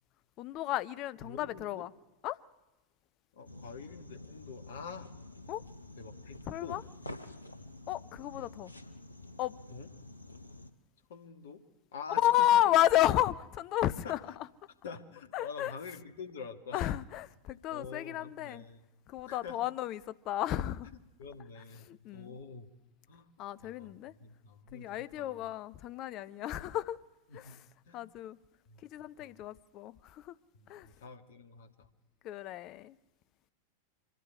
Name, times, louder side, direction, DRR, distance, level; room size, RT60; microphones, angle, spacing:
voice 1, 0.4-1.9 2.2-2.4 5.5-5.6 6.5-6.8 7.9-8.7 9.4-9.5 12.2-14.2 15.3-15.7 16.7-18.7 19.1-20.9 21.9-22.4 23.4-24.1 24.7-27.0 27.3-27.6 27.9-28.4 28.8-30.4 30.7-30.9 32.2-33.0, left 13 dB, 35° left, 0.6 m, -32 dB
voice 2, 1.2-1.9 3.3-5.1 6.0-6.8 9.7-9.9 11.1-11.6 11.9-12.7 14.0-14.2 14.8-17.0 17.7-18.8 19.3-19.6 21.2-21.9 22.1-22.7 23.1-23.3 23.6-25.4 27.3-27.6 27.9-28.1 28.7-28.8 29.2-29.4 30.5-31.9, left 5 dB, 60° left, 1.7 m, -46 dB
sound 1, 3.5-10.7, left 2 dB, 85° left, 1.0 m, -49 dB
24.5 x 11.5 x 9.8 m
figure-of-eight pair, 90°, 0 cm